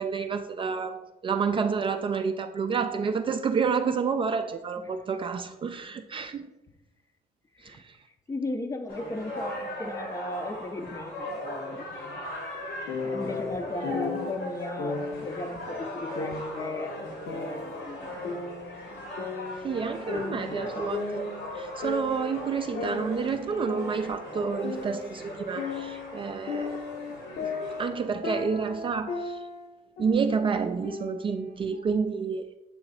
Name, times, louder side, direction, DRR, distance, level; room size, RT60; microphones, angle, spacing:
voice 1, 0.0-6.5 7.6-8.0 19.6-26.8 27.4-27.5 27.8-29.5 30.0-32.5, right 5 dB, 30° right, 7 dB, 0.3 m, -29 dB
voice 2, 8.3-12.2 13.0-18.6 19.7-20.9, left 2 dB, 20° left, 7 dB, 0.5 m, -37 dB
sound 1, 8.9-27.9, left 1 dB, 85° left, 2.0 m, -38 dB
sound 2, 12.9-14.3 14.8-15.3 16.2-17.8 18.2-19.8 20.1-22.3 22.7-25.2 25.6-29.7 30.0-30.3 30.8-31.8, left 4 dB, 70° left, 1.0 m, -35 dB
7.7 x 2.9 x 4.2 m, 0.98 s
cardioid pair, 110°, 17 cm